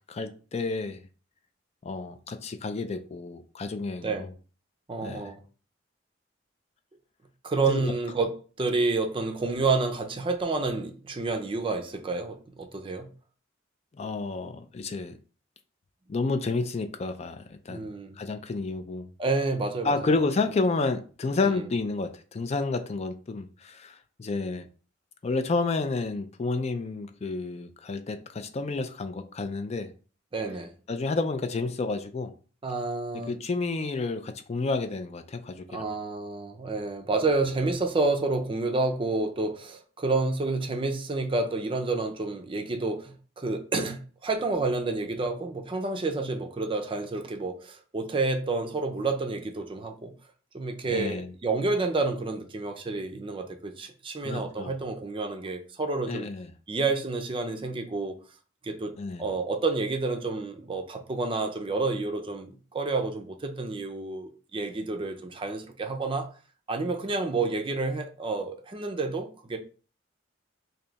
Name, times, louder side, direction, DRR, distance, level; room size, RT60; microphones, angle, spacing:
voice 1, 0.1-1.0 1.8-4.3 5.0-5.3 7.7-7.9 14.0-15.2 16.1-17.8 18.2-19.1 19.8-24.7 25.2-29.9 30.9-32.3 33.1-35.8 50.9-51.3 54.2-54.7 56.1-56.5 59.0-59.3, left 3 dB, 35° left, 0.4 m, -30 dB
voice 2, 4.9-5.4 7.4-13.1 17.7-18.2 19.2-20.0 21.4-21.6 30.3-30.7 32.6-33.3 35.7-50.1 50.5-56.3 56.7-58.2 58.6-66.3 66.7-69.6, right 3 dB, 30° right, 0.5 m, -29 dB
3.3 x 2.7 x 3.9 m
head